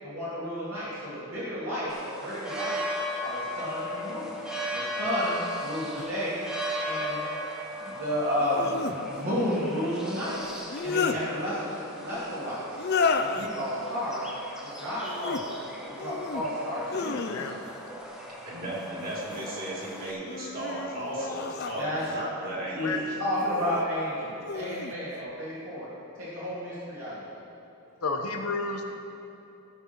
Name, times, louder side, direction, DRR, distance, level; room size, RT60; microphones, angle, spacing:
voice 1, 0.0-2.8 3.2-4.3 4.7-6.4 6.8-7.3 7.8-10.4 10.8-12.9 13.2-14.3 14.6-17.3 21.8-22.0 22.7-22.9 23.2-25.9 26.2-27.3, equal, 65° right, -10 dB, 2.7 m, -32 dB
sound 1, 1.9-20.1, equal, 5° right, 0.8 m, -37 dB
sound 2, 6.0-6.1 8.4-9.0 10.5-11.2 12.7-13.5 15.0-15.4 15.9-16.5 16.9-17.8 19.0-19.6 20.2-22.3 23.3-23.8 24.4-24.9, left 4 dB, 45° left, 0.5 m, -32 dB
voice 2, 17.1-17.6 22.8-23.0 28.0-28.8, left 3 dB, 85° left, 3 dB, 1.1 m, -31 dB
voice 3, 18.4-23.0, right 1 dB, 40° right, -5 dB, 2.8 m, -35 dB
16.0 x 5.4 x 5.9 m, 2.8 s
head